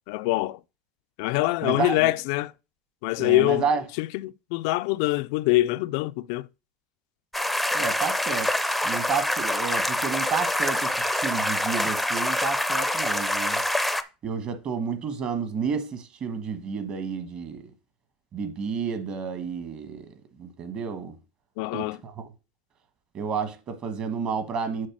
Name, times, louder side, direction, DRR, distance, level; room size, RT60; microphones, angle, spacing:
voice 1, 0.1-0.6 1.2-2.5 3.0-3.6 4.0-6.4 21.6-22.0, left 19 dB, 65° left, 0.3 m, -24 dB
voice 2, 1.6-2.1 3.2-3.8 7.7-8.5 8.8-13.6 14.2-17.7 18.3-20.1 20.4-21.1 21.7-22.1 23.1-24.9, right 6 dB, 35° right, 1.2 m, -30 dB
sound 1, 7.3-14.0, left 1 dB, ahead, 0.5 m, -26 dB
6.5 x 4.2 x 6.0 m
supercardioid pair, 140°, 3 cm